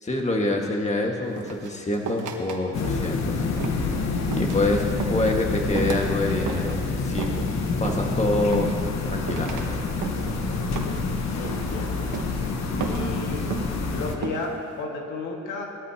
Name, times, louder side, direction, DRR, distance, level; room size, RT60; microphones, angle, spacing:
voice 1, 0.0-3.5 3.9-4.0 4.3-7.3 7.8-8.7 9.0-9.8, left 2 dB, 20° left, 1 dB, 1.8 m, -26 dB
sound 1, 1.4-2.6 2.8-3.2 3.6-3.9 4.3-4.7 5.0-5.3 5.8-6.1 6.5-6.8 7.2-7.5 7.8-8.1 8.5-9.0 9.3-9.7 10.0-10.4 10.8-11.1 11.4-11.8 12.1-12.4 12.8-13.1 13.5-13.8 14.2-14.5, right 6 dB, 80° right, 1.4 m, -33 dB
sound 2, 2.7-14.2, left 3 dB, 60° left, 1.4 m, -27 dB
voice 2, 11.3-12.1 12.8-13.5 13.9-15.7, left 3 dB, 90° left, 0 dB, 2.0 m, -33 dB
20.0 x 13.5 x 2.9 m, 2.8 s
cardioid pair, 90°, 30 cm